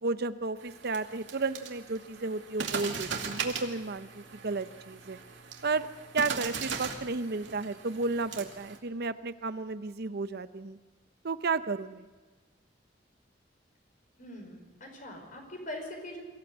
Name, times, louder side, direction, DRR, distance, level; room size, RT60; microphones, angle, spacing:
voice 1, 0.0-5.2 5.6-5.9 6.1-10.8 11.2-12.1, right 3 dB, 60° right, 12 dB, 0.7 m, -33 dB
sound 1, 0.6-8.8, right 5 dB, 80° right, 2.5 m, -39 dB
voice 2, 14.2-16.2, left 1 dB, 45° left, 3 dB, 5.0 m, -42 dB
23.5 x 15.5 x 8.0 m, 1.3 s
head